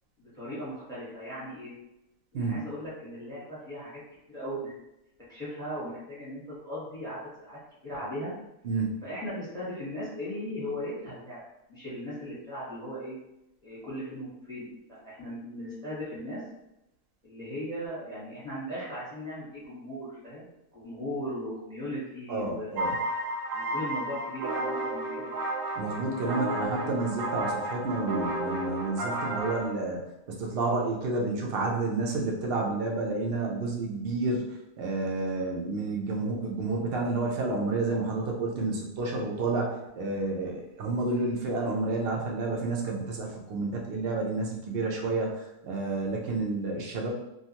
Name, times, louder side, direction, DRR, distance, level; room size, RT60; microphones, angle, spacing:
voice 1, 0.2-1.7 2.3-4.0 4.3-4.7 5.3-8.3 9.0-11.4 11.7-13.2 13.6-16.4 17.2-22.9 23.5-25.4, equal, 5° left, -8 dB, 1.0 m, -38 dB
voice 2, 22.3-22.9 25.8-34.5 34.8-47.1, right 3 dB, 60° right, -1 dB, 0.7 m, -30 dB
sound 1, 22.8-29.7, right 1 dB, 80° right, 1.0 m, -32 dB
2.6 x 2.4 x 2.8 m, 0.87 s
omnidirectional pair, 1.4 m